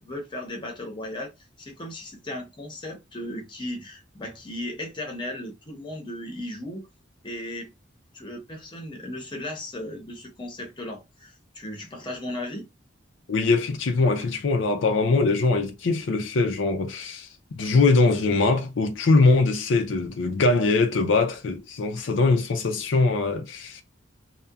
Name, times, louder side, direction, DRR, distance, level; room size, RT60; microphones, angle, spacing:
voice 1, 0.0-1.3 1.6-6.9 7.2-7.7 8.1-12.7, left 1 dB, 25° left, 0.7 m, -36 dB
voice 2, 13.3-23.8, left 3 dB, 75° left, 0.5 m, -22 dB
2.7 x 2.1 x 2.3 m
head